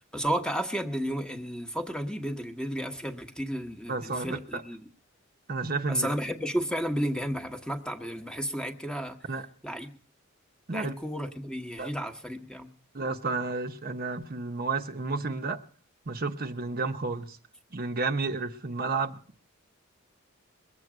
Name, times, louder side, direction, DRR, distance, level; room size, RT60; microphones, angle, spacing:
voice 1, 0.1-4.8 5.9-9.2 9.6-10.0 10.7-12.7, equal, 5° left, 1.1 m, -32 dB
voice 2, 3.9-4.6 5.5-6.1 9.3-9.5 10.7-11.0 11.8-11.9 12.9-15.6 16.1-17.4 17.7-19.2, right 3 dB, 45° right, 0.8 m, -31 dB
21.5 x 8.0 x 6.0 m
head